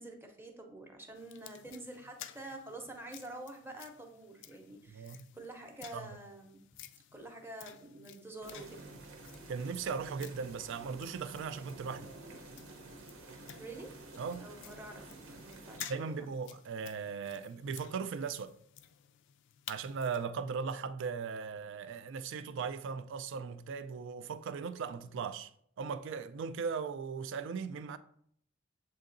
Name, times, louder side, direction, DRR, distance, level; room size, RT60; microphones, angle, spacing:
voice 1, 0.0-6.6 7.1-8.9 13.6-13.9 14.4-16.3, right 2 dB, 10° right, 0.7 m, -47 dB
sound 1, 1.1-20.3, left 11 dB, 60° left, 0.3 m, -54 dB
voice 2, 4.9-5.3 5.9-6.1 9.5-12.1 14.2-14.5 15.9-18.5 19.7-25.5 25.8-28.0, right 5 dB, 65° right, 0.3 m, -38 dB
sound 2, 8.4-15.8, right 2 dB, 80° right, 0.9 m, -51 dB
7.5 x 2.8 x 2.6 m
head